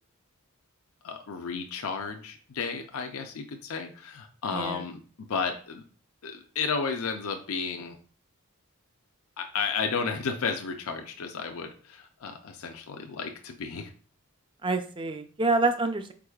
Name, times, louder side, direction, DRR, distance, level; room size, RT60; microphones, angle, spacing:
voice 1, 1.0-5.8 6.2-8.0 9.4-13.9, left 5 dB, 75° left, 4 dB, 0.5 m, -33 dB
voice 2, 4.5-4.8 14.6-16.1, right 3 dB, 20° right, 8 dB, 0.3 m, -27 dB
4.8 x 4.4 x 2.3 m, 0.41 s
head